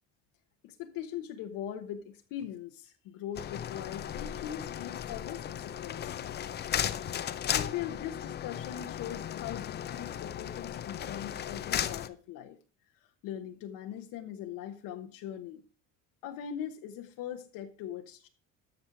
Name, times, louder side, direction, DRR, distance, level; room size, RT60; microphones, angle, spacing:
voice 1, 0.6-6.2 7.5-12.6 13.2-15.6 16.2-18.3, left 10 dB, 80° left, 5 dB, 1.2 m, -41 dB
sound 1, 3.4-12.1, left 10 dB, 30° left, 0.5 m, -36 dB
13.0 x 6.3 x 4.7 m, 0.38 s
cardioid pair, 165°, 33 cm